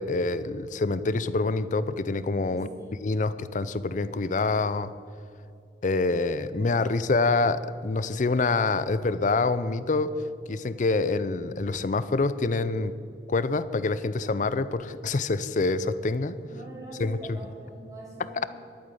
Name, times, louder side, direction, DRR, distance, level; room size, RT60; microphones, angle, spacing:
voice 1, 0.0-2.7 3.0-4.9 5.8-10.1 10.5-12.9 13.3-16.4 17.0-17.4, left 3 dB, 45° left, 15 dB, 0.5 m, -26 dB
voice 2, 2.5-2.9 16.5-18.5, right 1 dB, 20° right, -4 dB, 2.3 m, -44 dB
12.0 x 8.9 x 8.3 m, 2.5 s
head